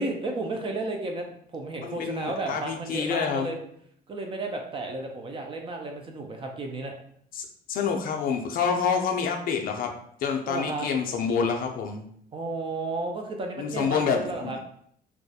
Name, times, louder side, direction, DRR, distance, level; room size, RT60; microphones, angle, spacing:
voice 1, 0.0-3.6 4.1-6.9 10.5-10.9 12.3-14.6, right 2 dB, 30° right, 3 dB, 0.4 m, -33 dB
voice 2, 1.8-3.5 7.3-10.0 10.2-12.0 13.6-14.5, left 6 dB, 60° left, 3 dB, 0.4 m, -27 dB
2.3 x 2.1 x 2.7 m, 0.67 s
cardioid pair, 110°, 17 cm